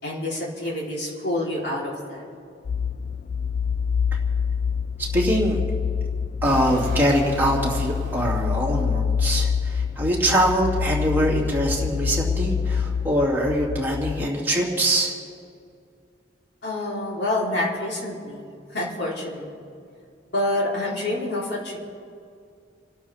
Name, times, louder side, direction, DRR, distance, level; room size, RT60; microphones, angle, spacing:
voice 1, 0.0-2.2 16.6-18.4 18.7-19.7 20.3-21.8, left 1 dB, 65° left, -5 dB, 4.1 m, -27 dB
sound 1, 2.6-14.3, left 6 dB, 50° left, 0.3 m, -26 dB
voice 2, 5.1-5.6 6.4-15.1, right 1 dB, 10° right, -4 dB, 3.0 m, -23 dB
Explosion, 6.4-9.4, right 1 dB, 45° right, 2.0 m, -39 dB
30.0 x 12.5 x 3.7 m, 2.3 s
head